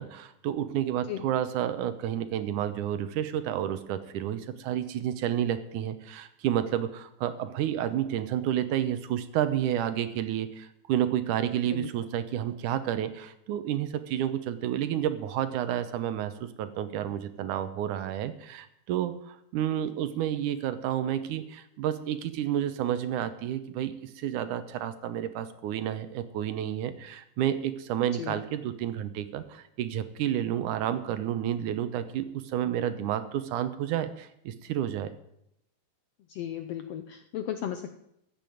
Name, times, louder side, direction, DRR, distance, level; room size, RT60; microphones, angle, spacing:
voice 1, 0.0-35.1, right 11 dB, 75° right, 11 dB, 2.4 m, -30 dB
voice 2, 36.3-38.0, left 10 dB, 75° left, 8 dB, 1.5 m, -35 dB
15.0 x 7.0 x 9.2 m, 0.77 s
omnidirectional pair, 3.7 m